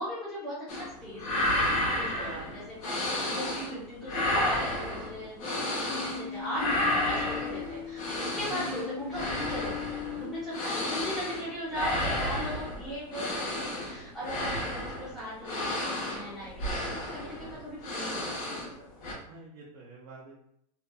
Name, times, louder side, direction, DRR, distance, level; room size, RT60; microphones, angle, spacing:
voice 1, 0.0-9.7 10.1-18.9, equal, ahead, -10 dB, 0.7 m, -39 dB
sound 1, 0.7-0.9 1.2-3.8 4.0-6.3 6.5-18.7 19.0-19.1, left 1 dB, 55° left, 1.0 m, -32 dB
voice 2, 2.2-2.5 8.4-8.5 17.5-17.6 19.2-20.4, right 3 dB, 45° right, -4 dB, 0.6 m, -49 dB
sound 2, 5.9-11.1, left 8 dB, 25° right, 1.0 m, -39 dB
2.7 x 2.4 x 2.2 m, 0.72 s
supercardioid pair, 155°, 21 cm